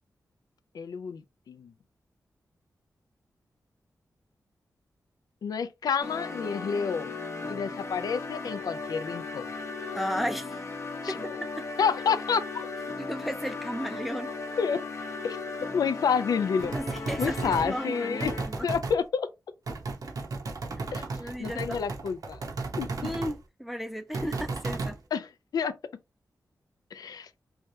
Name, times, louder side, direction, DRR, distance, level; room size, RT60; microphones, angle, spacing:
voice 1, 0.7-1.2 1.5-1.7 5.4-7.1 7.5-9.4 11.0-11.2 11.8-12.4 14.6-14.8 15.2-15.4 15.7-16.7 17.2-18.3 18.6-19.3 20.9-21.1 21.4-22.4 22.8-22.9 25.1-25.7 26.9-27.3, left 6 dB, 80° left, 0.4 m, -29 dB
sound 1, 6.0-18.7, left 3 dB, 45° left, 0.8 m, -37 dB
voice 2, 9.9-10.6 11.1-11.2 11.6-11.7 13.0-14.3 16.7-18.7 21.1-21.8 23.0-25.0, equal, ahead, 0.4 m, -34 dB
sound 2, 16.6-17.7 18.2-19.0 19.7-23.4 24.1-25.0, right 3 dB, 70° right, 0.8 m, -34 dB
3.2 x 2.3 x 2.6 m
cardioid pair, 75°, 6 cm